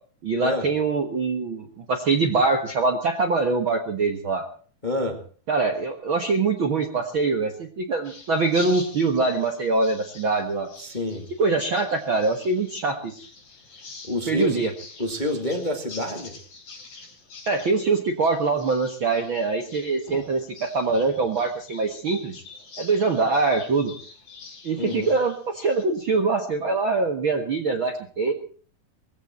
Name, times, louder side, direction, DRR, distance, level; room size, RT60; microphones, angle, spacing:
voice 1, 0.2-4.4 5.5-10.7 11.4-13.2 14.3-14.7 17.5-22.4 22.8-23.9 24.6-28.3, right 3 dB, 50° right, 5 dB, 1.7 m, -23 dB
voice 2, 4.8-5.2 10.8-11.3 14.0-14.6 15.0-16.3 24.8-25.1, left 1 dB, 15° left, 4 dB, 1.6 m, -28 dB
sound 1, 8.0-25.8, left 4 dB, 50° left, 5.3 m, -46 dB
20.0 x 15.5 x 4.4 m, 0.43 s
omnidirectional pair, 4.1 m